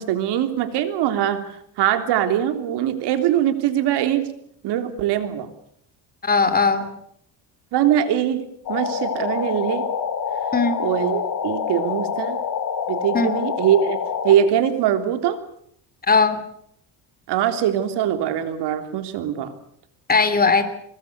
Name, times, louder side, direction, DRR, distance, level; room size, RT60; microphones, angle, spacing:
voice 1, 0.0-4.3 4.6-5.5 7.7-9.8 10.8-12.4 12.9-14.0 14.2-15.4 17.3-19.5, right 10 dB, 75° right, 9 dB, 3.5 m, -22 dB
voice 2, 6.2-6.9 10.5-10.8 13.1-13.3 16.1-16.4 20.1-20.6, left 4 dB, 20° left, 11 dB, 3.1 m, -18 dB
sound 1, 8.7-14.4, left 7 dB, 50° left, 4.6 m, -26 dB
24.5 x 20.0 x 8.2 m, 0.68 s
cardioid pair, 120°, 41 cm